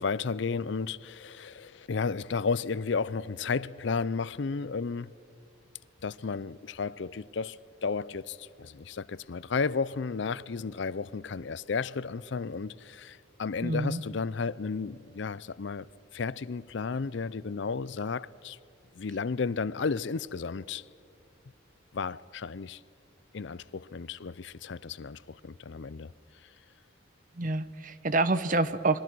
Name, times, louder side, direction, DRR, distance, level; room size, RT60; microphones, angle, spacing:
voice 1, 0.0-5.1 6.0-15.9 16.1-18.6 19.0-20.8 21.9-22.8 23.3-26.1 26.4-26.5, left 5 dB, 60° left, 0.5 m, -33 dB
voice 2, 13.6-14.0 27.4-29.0, right 2 dB, 40° right, 0.8 m, -27 dB
28.0 x 22.0 x 6.2 m
head